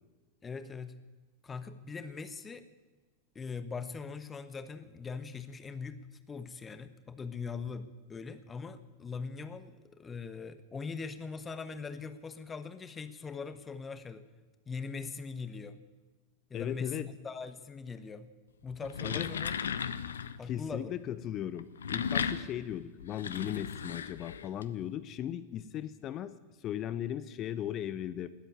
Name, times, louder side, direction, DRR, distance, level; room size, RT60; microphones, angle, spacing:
voice 1, 0.4-1.0 1.4-2.7 3.3-6.0 6.3-14.2 14.7-15.8 16.5-18.3 18.6-19.5 19.8-19.9 20.4-20.9, left 5 dB, 15° left, 11 dB, 1.1 m, -41 dB
voice 2, 16.5-17.1 19.0-19.3 20.5-26.3 26.6-28.3, left 11 dB, 35° left, 14 dB, 0.8 m, -37 dB
sound 1, 18.7-20.4 21.5-24.6, left 7 dB, 70° left, 0.7 m, -35 dB
18.5 x 8.1 x 9.5 m, 1.3 s
figure-of-eight pair, 90°, 0 cm